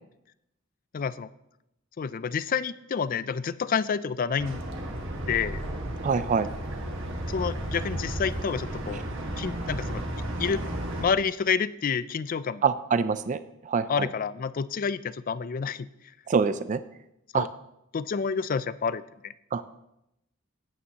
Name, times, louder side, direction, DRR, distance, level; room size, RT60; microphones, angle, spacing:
voice 1, 0.9-1.3 2.0-4.6 5.3-5.6 7.3-9.0 9.4-10.0 10.4-10.6 11.0-12.6 13.9-15.9 17.3-17.5 17.9-19.3, left 6 dB, 40° left, 16 dB, 0.4 m, -29 dB
sound 1, 4.4-11.0, right 1 dB, 65° right, 1.6 m, -33 dB
voice 2, 6.0-6.5 12.6-14.1 16.3-16.8 17.3-17.5 19.5-19.7, right 5 dB, 35° right, 13 dB, 0.3 m, -25 dB
16.5 x 8.5 x 2.9 m, 0.84 s
head